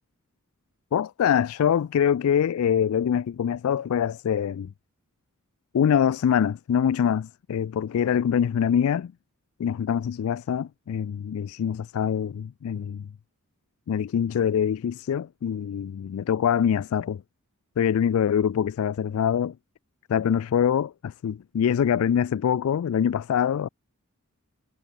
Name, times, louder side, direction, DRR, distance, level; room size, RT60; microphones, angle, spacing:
voice 1, 0.9-4.7 5.7-9.1 9.6-13.1 13.9-17.2 17.8-19.5 20.1-23.7, left 8 dB, 70° left, 0.3 m, -24 dB
head